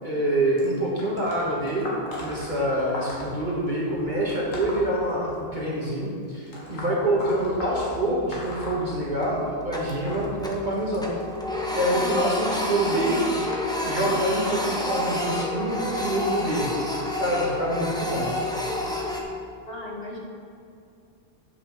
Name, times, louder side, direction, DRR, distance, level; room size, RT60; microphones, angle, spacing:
voice 1, 0.0-1.9 2.2-11.1 11.7-13.2 13.8-16.7 17.2-18.3, right 1 dB, 35° right, -5 dB, 1.7 m, -26 dB
sound 1, 0.6-5.7 6.5-9.5 9.8-15.1 15.9-16.2 17.2-17.3 18.2-18.3 19.0-19.1, left 1 dB, 75° left, 2.2 m, -39 dB
Printer, 7.7-8.2 8.6-8.7 9.2-10.7 11.0-19.2, left 1 dB, 5° left, 0.9 m, -29 dB
voice 2, 19.7-20.2, left 1 dB, 45° left, -3 dB, 2.1 m, -36 dB
8.8 x 6.3 x 5.9 m, 2.4 s
omnidirectional pair, 1.4 m